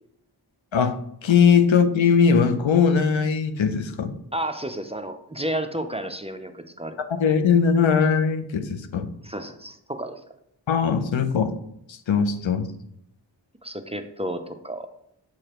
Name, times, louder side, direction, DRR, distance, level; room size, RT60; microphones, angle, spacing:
voice 1, 1.2-4.1 7.2-9.1 10.7-11.5 11.9-12.7, left 6 dB, 90° left, 9 dB, 0.7 m, -20 dB
voice 2, 4.3-7.0 9.2-10.2 13.6-14.9, right 1 dB, 15° right, 7 dB, 0.4 m, -31 dB
7.3 x 4.9 x 3.0 m, 0.73 s
wide cardioid pair, 75°, 45 cm